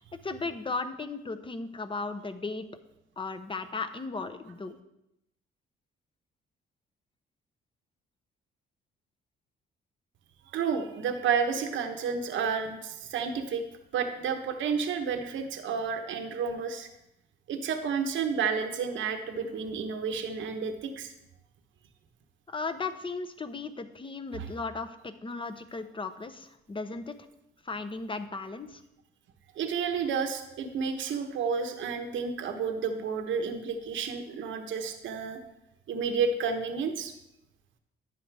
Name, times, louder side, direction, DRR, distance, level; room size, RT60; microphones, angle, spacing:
voice 1, 0.2-2.6 3.2-4.8 22.5-27.1 27.6-28.8, left 3 dB, 25° left, 10 dB, 0.9 m, -36 dB
voice 2, 10.5-13.6 13.9-16.9 17.5-21.1 24.3-24.5 29.6-35.4 35.9-37.1, right 6 dB, 75° right, 6 dB, 1.1 m, -31 dB
11.5 x 9.3 x 3.5 m, 0.84 s
cardioid pair, 90°, 20 cm